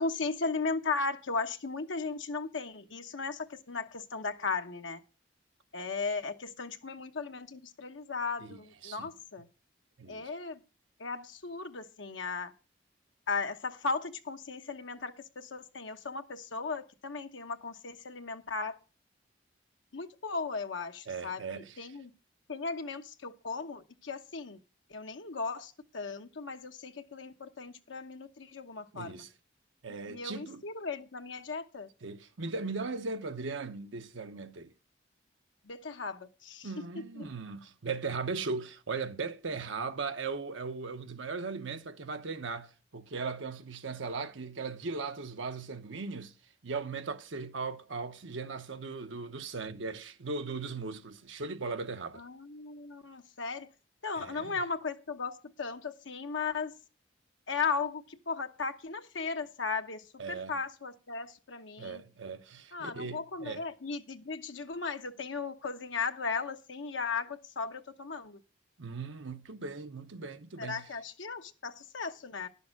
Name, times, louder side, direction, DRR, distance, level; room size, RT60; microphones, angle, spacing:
voice 1, 0.0-5.0 5.7-9.5 10.1-10.6 11.0-12.5 13.3-18.8 19.9-22.1 22.5-24.6 24.9-29.2 29.9-31.9 35.6-37.3 52.1-53.7 54.0-56.7 57.5-62.0 62.7-68.4 70.6-72.5, left 4 dB, 85° left, 1.0 m, -36 dB
voice 2, 8.4-9.1 10.0-10.3 21.1-21.8 28.9-29.3 29.8-30.6 32.0-34.7 36.6-46.3 46.6-52.2 54.2-54.6 60.2-60.6 61.8-63.6 68.8-70.9, right 4 dB, 85° right, 0.9 m, -38 dB
10.5 x 6.8 x 6.3 m
head